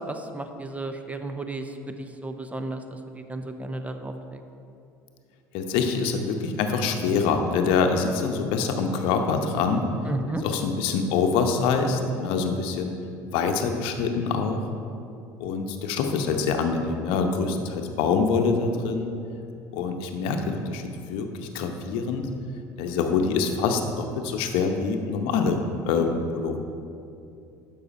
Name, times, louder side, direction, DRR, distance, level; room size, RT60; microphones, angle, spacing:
voice 1, 0.1-1.7 2.0-2.8 3.1-4.4 10.1-10.4, right 2 dB, 15° right, 7 dB, 0.7 m, -33 dB
voice 2, 5.5-9.9 10.4-12.9 13.3-14.6 15.4-19.1 19.7-22.3 22.8-25.6 25.9-26.6, left 5 dB, 65° left, 5 dB, 0.8 m, -25 dB
12.0 x 5.6 x 4.2 m, 2.6 s
hypercardioid pair, 70°, 10 cm